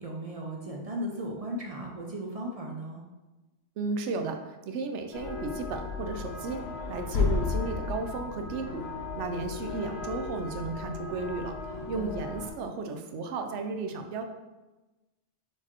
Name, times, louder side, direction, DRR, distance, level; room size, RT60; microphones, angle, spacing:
voice 1, 0.0-3.1 11.7-12.2, right 1 dB, 50° right, -1 dB, 0.4 m, -37 dB
voice 2, 3.8-6.6 6.9-8.9 9.1-11.5 11.9-14.2, right 4 dB, 75° right, 6 dB, 0.9 m, -34 dB
sound 1, 5.1-12.5, left 5 dB, 65° left, 0.9 m, -34 dB
4.3 x 4.0 x 3.0 m, 1.1 s
omnidirectional pair, 1.2 m